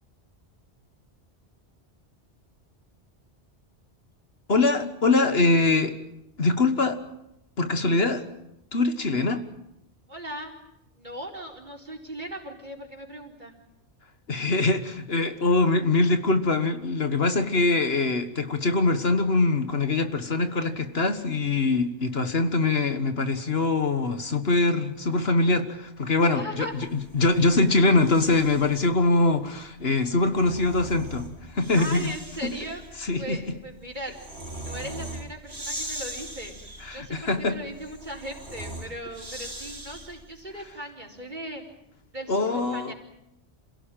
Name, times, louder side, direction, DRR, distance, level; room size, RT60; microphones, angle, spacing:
voice 1, 4.5-6.0 6.4-7.0 7.6-8.2 8.7-9.4 14.3-32.1 32.4-32.5 33.0-33.4 36.8-37.6 42.3-42.9, left 3 dB, 60° left, 8 dB, 1.7 m, -23 dB
voice 2, 10.1-10.5 11.0-13.5 26.3-26.7 31.7-32.8 33.2-34.2 34.6-36.5 36.9-41.6 42.1-42.9, right 1 dB, 40° right, 3 dB, 4.5 m, -38 dB
Breathing, 26.9-28.8 30.1-40.3, right 1 dB, 65° right, 5.3 m, -40 dB
27.5 x 17.0 x 9.1 m, 0.84 s
omnidirectional pair, 1.2 m